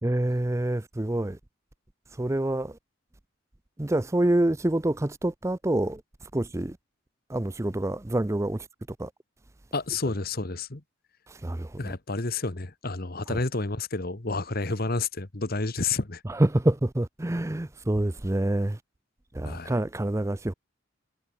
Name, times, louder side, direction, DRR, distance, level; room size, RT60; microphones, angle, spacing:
voice 1, 0.0-1.4 2.2-2.7 3.8-6.0 6.3-6.7 7.3-8.6 9.0-9.1 11.4-11.7 16.3-18.8 19.4-20.5, right 1 dB, 15° right, 0.5 m, -26 dB
voice 2, 9.7-10.8 11.8-16.2 19.4-19.8, left 3 dB, 45° left, 1.4 m, -30 dB
head